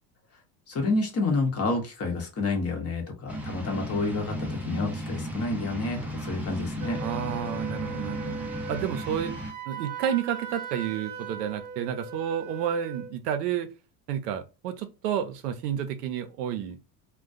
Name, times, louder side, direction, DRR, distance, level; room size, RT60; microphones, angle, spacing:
voice 1, 0.7-7.0, left 3 dB, 30° left, 0.8 m, -29 dB
sound 1, 3.3-9.5, equal, 5° right, 0.5 m, -35 dB
Wind instrument woodwind instrument, 6.8-13.1, right 6 dB, 40° right, 0.8 m, -39 dB
voice 2, 7.0-8.4 8.7-9.3 9.7-13.7 14.1-16.8, right 9 dB, 80° right, 0.6 m, -30 dB
2.3 x 2.2 x 2.5 m
hypercardioid pair, 90°, 48 cm